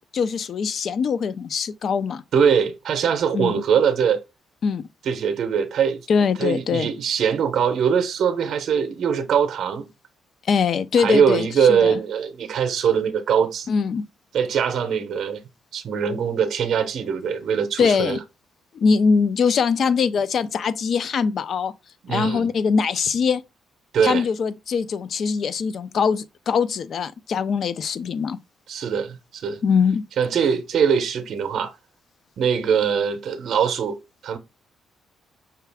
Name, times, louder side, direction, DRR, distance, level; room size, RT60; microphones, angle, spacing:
voice 1, 0.1-2.2 3.3-3.6 4.6-4.8 6.1-6.9 10.5-12.0 13.7-14.1 17.8-18.2 18.7-21.7 22.1-23.4 24.0-28.4 29.6-30.0, left 5 dB, 55° left, 0.4 m, -22 dB
voice 2, 2.3-4.2 5.0-6.1 6.4-9.9 11.0-13.7 14.3-15.4 15.7-18.2 22.0-22.5 23.9-24.3 28.7-29.6 30.2-31.7 32.4-34.4, right 7 dB, 65° right, 0.6 m, -22 dB
5.7 x 2.3 x 3.4 m
cardioid pair, 90°, 0 cm